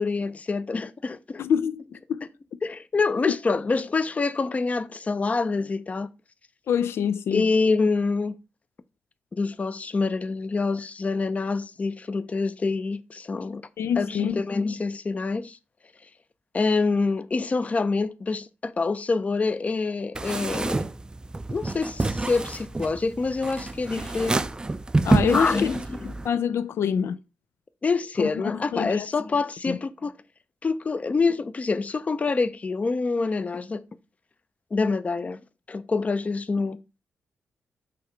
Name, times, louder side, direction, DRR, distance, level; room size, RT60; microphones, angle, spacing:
voice 1, 0.0-1.4 2.6-6.1 7.3-8.4 9.3-13.6 14.0-15.6 16.5-20.8 21.5-24.4 25.2-26.1 27.8-30.1 30.6-33.8 34.7-35.4 35.7-36.8, left 4 dB, 35° left, 0.6 m, -26 dB
voice 2, 1.4-2.3 3.2-3.3 6.7-7.5 13.8-14.4 25.0-25.7 26.0-27.2 28.2-29.1 29.7-29.8, left 8 dB, 80° left, 0.4 m, -26 dB
sound 1, 20.1-26.3, right 2 dB, 20° right, 0.4 m, -27 dB
5.7 x 3.3 x 5.0 m
cardioid pair, 85°, 4 cm